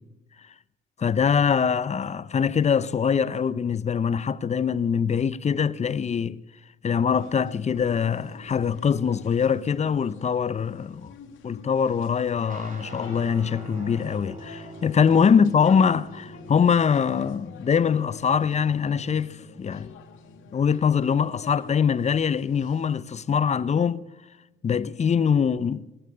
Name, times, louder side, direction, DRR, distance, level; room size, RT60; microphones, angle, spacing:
voice 1, 1.0-6.4 6.8-11.1 11.4-19.9 20.5-24.0 24.6-25.8, left 7 dB, 35° left, 0.6 m, -23 dB
sound 1, 7.1-23.0, left 7 dB, 80° left, 2.0 m, -47 dB
Guitar, 12.5-21.3, right 2 dB, 40° right, 3.4 m, -45 dB
19.5 x 8.5 x 8.5 m
cardioid pair, 90°, 20 cm